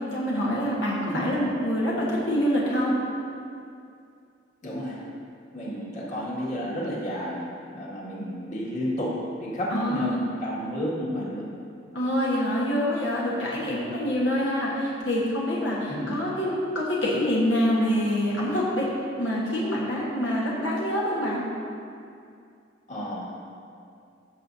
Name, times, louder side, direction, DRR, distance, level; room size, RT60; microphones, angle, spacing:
voice 1, 0.0-2.9 9.7-10.2 11.9-18.9 19.2-21.4, equal, 85° left, -5 dB, 1.4 m, -26 dB
voice 2, 4.6-5.0 5.5-11.5 15.9-16.2 22.9-23.3, equal, 40° left, -6 dB, 1.9 m, -31 dB
14.5 x 6.5 x 2.7 m, 2.5 s
head